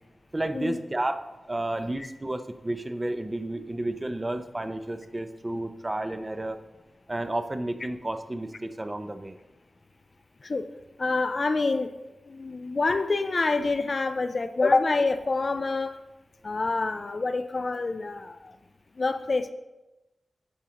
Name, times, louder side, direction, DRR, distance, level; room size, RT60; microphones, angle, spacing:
voice 1, 0.3-6.6 7.1-9.4, right 1 dB, 30° right, 9 dB, 0.6 m, -31 dB
voice 2, 11.0-11.9 12.3-16.0 16.4-18.6 19.0-19.5, left 3 dB, 55° left, 9 dB, 0.4 m, -27 dB
11.0 x 5.0 x 2.9 m, 1.0 s
cardioid pair, 55°, 0 cm